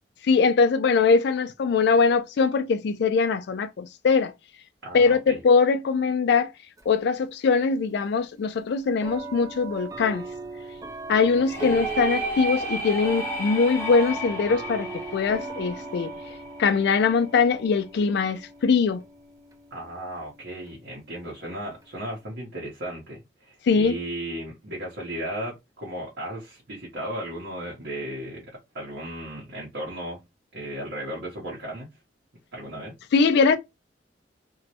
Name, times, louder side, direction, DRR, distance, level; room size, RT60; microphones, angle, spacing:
voice 1, 0.2-4.3 4.9-6.5 6.9-10.3 11.1-16.1 16.6-19.0 23.7-24.0 33.1-33.6, left 5 dB, 65° left, 0.3 m, -22 dB
voice 2, 4.8-5.4 11.5-11.8 19.7-28.4 28.7-30.2 30.5-31.9 32.5-32.9, right 1 dB, 65° right, 0.7 m, -35 dB
sound 1, 6.8-6.9 8.0-8.1 9.0-22.2, right 3 dB, 20° right, 0.4 m, -39 dB
sound 2, 11.5-17.1, right 1 dB, 15° left, 0.7 m, -33 dB
2.3 x 2.0 x 2.7 m
head